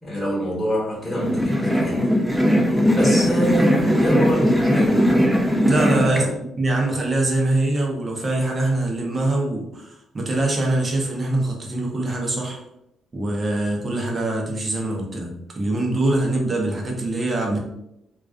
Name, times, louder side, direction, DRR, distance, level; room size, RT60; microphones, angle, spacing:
voice 1, 0.0-2.3 2.9-5.0 5.9-6.3, equal, 15° left, -7 dB, 1.1 m, -26 dB
sound 1, 1.1-6.2, equal, ahead, 0.4 m, -19 dB
voice 2, 5.6-12.6 13.1-17.6, right 2 dB, 35° right, 0 dB, 0.6 m, -23 dB
2.3 x 2.3 x 2.3 m, 0.82 s
cardioid pair, 90°, 0 cm